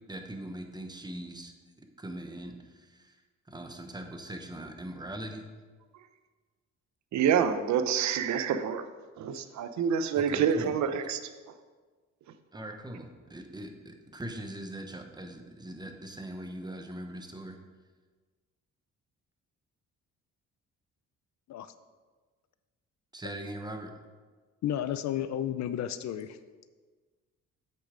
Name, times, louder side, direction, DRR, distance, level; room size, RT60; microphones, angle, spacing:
voice 1, 0.1-1.5 1.8-3.2 3.5-5.5 10.1-10.8 12.5-17.6 23.1-24.0, right 1 dB, 15° right, 5 dB, 1.0 m, -41 dB
voice 2, 7.1-8.8 9.2-11.2, right 7 dB, 70° right, 10 dB, 0.7 m, -27 dB
voice 3, 24.6-26.4, left 10 dB, 65° left, 13 dB, 0.6 m, -32 dB
8.4 x 6.3 x 5.0 m, 1.4 s
cardioid pair, 90°, 30 cm